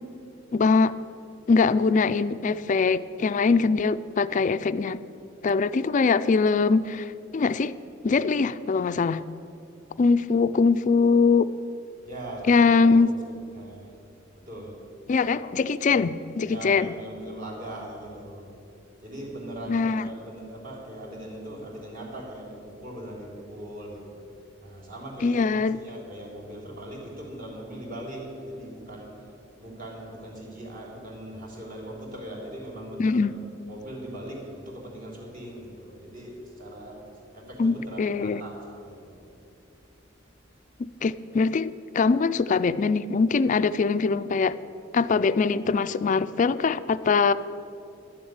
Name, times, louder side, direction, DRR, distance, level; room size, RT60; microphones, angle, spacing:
voice 1, 0.5-0.9 1.5-5.0 5.4-7.8 8.0-9.2 10.0-11.5 12.5-13.1 15.1-16.9 19.7-20.1 25.2-25.8 33.0-33.3 37.6-38.4 40.8-44.6 44.9-47.3, left 4 dB, 40° left, 14 dB, 0.3 m, -22 dB
voice 2, 12.0-13.1 13.5-13.9 14.4-14.8 15.9-16.1 16.5-18.5 19.0-24.2 24.6-33.2 33.6-39.3, right 1 dB, 45° right, -3 dB, 3.4 m, -40 dB
11.5 x 7.2 x 9.5 m, 2.6 s
head